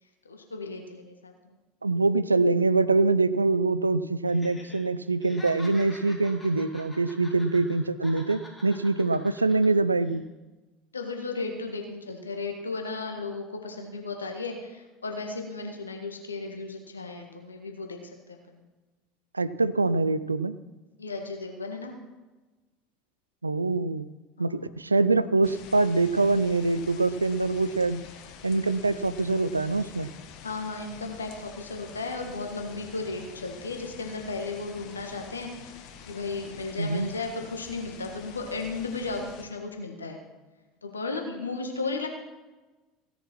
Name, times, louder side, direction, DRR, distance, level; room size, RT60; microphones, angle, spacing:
voice 1, 0.2-1.5 10.9-18.0 18.3-18.6 21.0-21.9 24.4-24.6 30.4-35.5 36.1-40.2 40.8-42.1, left 3 dB, 80° left, 3 dB, 1.6 m, -35 dB
voice 2, 1.8-10.2 19.3-20.6 23.4-24.1 24.4-28.0 28.4-30.1 36.8-37.1, right 3 dB, 85° right, 15 dB, 0.4 m, -24 dB
Laughter, 4.3-4.8 5.1-7.8 8.0-9.7 10.0-10.2, left 1 dB, 10° left, 4.4 m, -47 dB
sound 1, 25.4-39.4, left 7 dB, 55° left, 1.4 m, -47 dB
16.5 x 7.2 x 6.0 m, 1.2 s
figure-of-eight pair, 70°, 0 cm